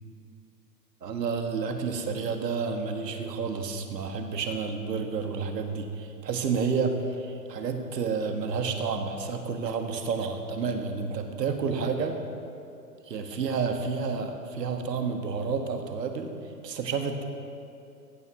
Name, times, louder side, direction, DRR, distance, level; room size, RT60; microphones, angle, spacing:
voice 1, 1.0-12.2 13.1-16.3 16.6-17.2, right 5 dB, 75° right, 5 dB, 1.7 m, -30 dB
16.0 x 7.0 x 6.0 m, 2.6 s
hypercardioid pair, 145°, 50 cm